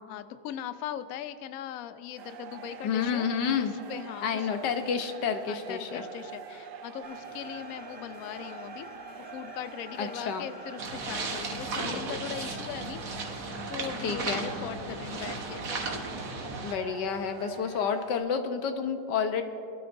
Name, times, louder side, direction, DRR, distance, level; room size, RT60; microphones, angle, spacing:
voice 1, 0.1-3.3 3.6-4.5 5.5-8.9 9.3-13.0 13.3-15.6, left 10 dB, 90° left, 12 dB, 0.7 m, -40 dB
sound 1, 2.2-18.2, right 7 dB, 70° right, 1.2 m, -45 dB
voice 2, 2.8-3.8 4.2-6.0 10.0-10.4 14.0-14.5 16.6-19.4, left 6 dB, 65° left, 7 dB, 1.4 m, -29 dB
sound 2, 7.0-12.0, left 1 dB, 40° left, 3.1 m, -49 dB
sound 3, 10.8-16.7, right 3 dB, 50° right, 1.4 m, -35 dB
23.5 x 12.5 x 2.6 m, 2.7 s
omnidirectional pair, 2.1 m